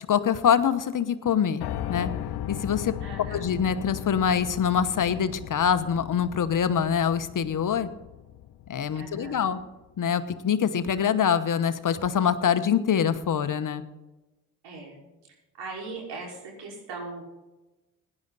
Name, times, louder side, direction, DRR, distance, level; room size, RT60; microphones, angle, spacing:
voice 1, 0.1-2.1 2.5-2.9 3.3-7.9 8.7-9.6 10.0-13.8, left 8 dB, 45° left, 12 dB, 1.1 m, -24 dB
Piano, 1.6-9.6, left 11 dB, 65° left, 0.9 m, -37 dB
voice 2, 3.0-3.4 8.9-9.6 14.6-15.0 15.6-17.2, right 3 dB, 70° right, -1 dB, 5.1 m, -39 dB
17.0 x 11.0 x 4.2 m, 1.1 s
hypercardioid pair, 50°, 43 cm